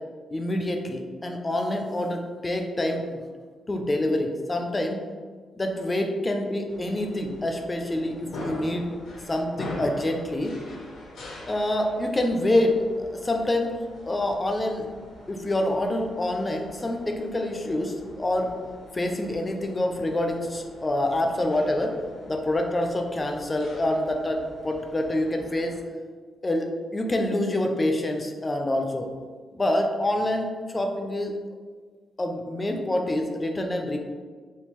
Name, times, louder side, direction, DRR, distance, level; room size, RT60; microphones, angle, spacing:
voice 1, 0.3-3.2 3.7-5.0 5.6-8.9 9.3-10.6 11.5-13.8 14.1-14.9 15.3-18.5 18.9-22.0 22.3-25.8 26.4-29.1 29.5-30.5 30.7-31.3 32.2-34.0, left 1 dB, 15° left, 4 dB, 0.3 m, -26 dB
sound 1, 6.7-25.8, left 1 dB, 80° left, 0.7 m, -44 dB
3.5 x 2.7 x 2.9 m, 1.5 s
wide cardioid pair, 160°, 0 cm